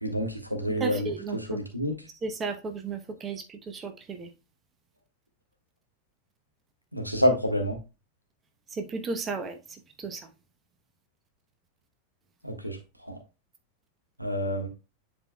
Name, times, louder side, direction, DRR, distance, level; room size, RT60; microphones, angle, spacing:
voice 1, 0.0-1.1 1.5-1.9 6.9-7.8 12.4-12.8 13.0-13.2 14.2-14.7, equal, 90° right, 1.4 m, -27 dB
voice 2, 0.7-1.6 2.2-4.3 8.7-10.3, right 4 dB, 20° right, 0.9 m, -34 dB
10.0 x 4.4 x 2.2 m
figure-of-eight pair, 90°, 0 cm